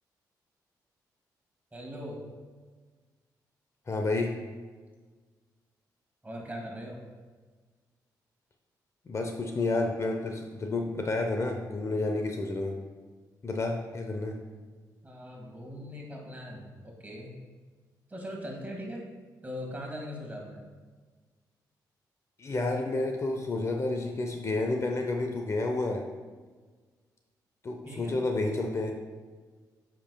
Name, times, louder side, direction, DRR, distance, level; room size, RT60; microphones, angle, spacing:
voice 1, 1.7-2.2 6.2-7.0 15.0-17.3 18.1-19.1 19.4-20.6 27.8-28.2, equal, 20° right, -1 dB, 1.8 m, -40 dB
voice 2, 3.9-4.4 9.1-12.8 13.4-14.4 22.4-26.0 27.6-28.9, left 2 dB, 40° left, 3 dB, 0.7 m, -30 dB
8.7 x 5.3 x 2.2 m, 1.4 s
cardioid pair, 65°, 8 cm